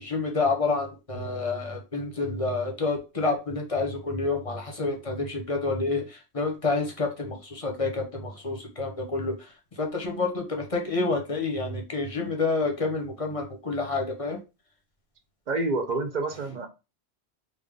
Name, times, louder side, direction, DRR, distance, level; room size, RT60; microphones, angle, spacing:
voice 1, 0.0-14.4, left 3 dB, 35° left, 2 dB, 0.8 m, -28 dB
voice 2, 15.5-16.7, right 3 dB, 50° right, 5 dB, 0.7 m, -28 dB
3.5 x 2.4 x 3.5 m, 0.28 s
omnidirectional pair, 1.1 m